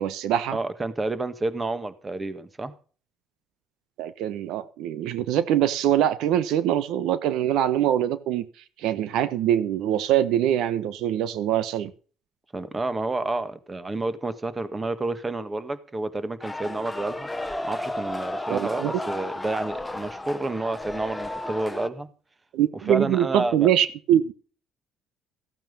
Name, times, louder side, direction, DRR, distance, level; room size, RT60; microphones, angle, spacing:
voice 1, 0.0-0.6 4.0-8.4 8.8-11.9 18.5-18.9 22.5-24.3, right 11 dB, 75° right, 15 dB, 1.1 m, -23 dB
voice 2, 0.5-2.7 12.5-17.3 17.6-22.1 22.9-23.7, right 2 dB, 20° right, 12 dB, 1.7 m, -30 dB
sound 1, 16.4-21.9, left 1 dB, 10° left, 1.1 m, -33 dB
15.0 x 9.0 x 5.5 m, 0.40 s
cardioid pair, 105°, 0 cm